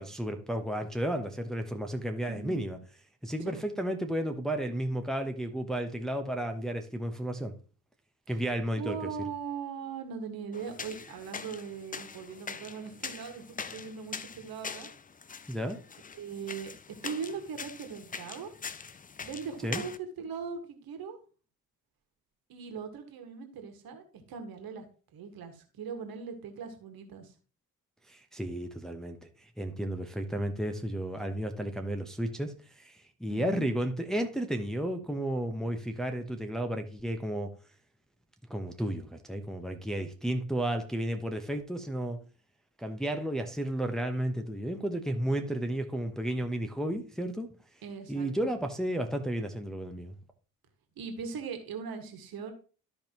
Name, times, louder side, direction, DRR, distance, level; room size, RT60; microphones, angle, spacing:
voice 1, 0.0-2.8 3.2-7.5 8.3-9.1 15.5-15.8 19.6-19.8 28.1-37.5 38.5-42.2 42.8-47.5 48.1-50.2, right 1 dB, ahead, 4 dB, 1.1 m, -33 dB
voice 2, 2.3-2.6 3.4-3.6 8.8-13.5 13.7-14.9 16.2-16.7 17.0-18.5 19.2-21.2 22.5-24.8 25.1-27.3 33.3-33.6 47.8-48.5 51.0-52.5, right 6 dB, 50° right, 6 dB, 1.8 m, -40 dB
sound 1, 10.5-20.0, left 5 dB, 20° left, 0.6 m, -43 dB
13.0 x 5.1 x 3.0 m, 0.38 s
figure-of-eight pair, 45°, 44 cm